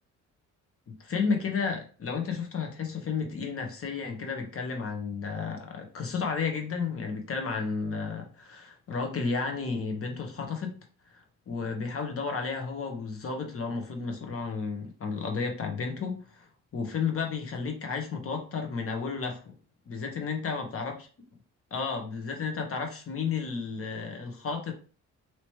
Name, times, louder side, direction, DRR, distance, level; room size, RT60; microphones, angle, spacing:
voice 1, 1.0-10.8 11.5-16.5 16.7-19.5 19.9-20.9 21.7-24.7, left 5 dB, 50° left, 3 dB, 1.1 m, -32 dB
3.0 x 3.0 x 3.0 m, 0.39 s
cardioid pair, 90°, 30 cm